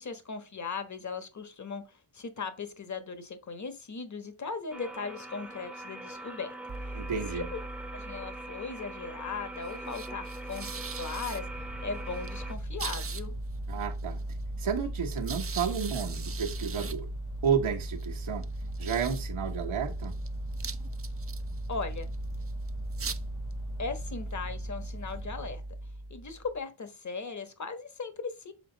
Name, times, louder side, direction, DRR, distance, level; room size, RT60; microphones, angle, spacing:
voice 1, 0.0-1.8 2.1-6.5 7.3-7.4 7.9-11.4 11.8-13.3 21.7-22.1 23.8-25.6 26.1-28.5, left 4 dB, 35° left, 1.2 m, -38 dB
sound 1, 4.7-12.5, right 1 dB, ahead, 0.9 m, -42 dB
sound 2, 6.7-26.6, right 2 dB, 30° right, 0.5 m, -37 dB
voice 2, 6.9-7.5 13.7-14.2 14.6-17.1 17.4-18.4 18.8-20.1, right 7 dB, 70° right, 1.3 m, -31 dB
sound 3, 11.4-25.5, left 3 dB, 85° left, 3.1 m, -49 dB
7.8 x 4.2 x 3.9 m
wide cardioid pair, 90°, 50 cm